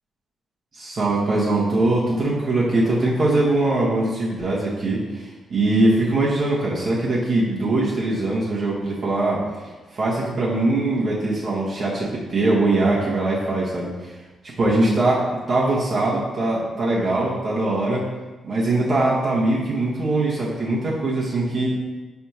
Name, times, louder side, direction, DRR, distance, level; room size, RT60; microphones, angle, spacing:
voice 1, 0.7-9.4 9.9-13.9 14.6-18.0 18.4-21.7, right 2 dB, 55° right, -6 dB, 1.2 m, -21 dB
4.4 x 3.5 x 2.8 m, 1.2 s
hypercardioid pair, 40°, 0 cm